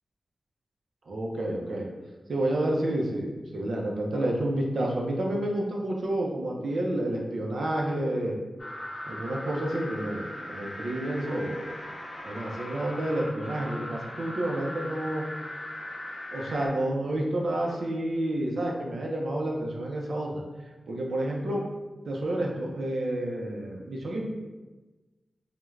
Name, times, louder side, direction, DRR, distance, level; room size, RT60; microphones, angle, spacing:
voice 1, 1.1-1.9 2.3-8.3 9.1-11.7 12.2-15.3 16.3-20.4 20.9-21.6 22.1-24.3, right 1 dB, 85° right, -1 dB, 0.4 m, -29 dB
sound 1, 8.6-16.7, left 1 dB, 80° left, 0.6 m, -39 dB
3.1 x 2.1 x 2.3 m, 1.2 s
wide cardioid pair, 135°, 0 cm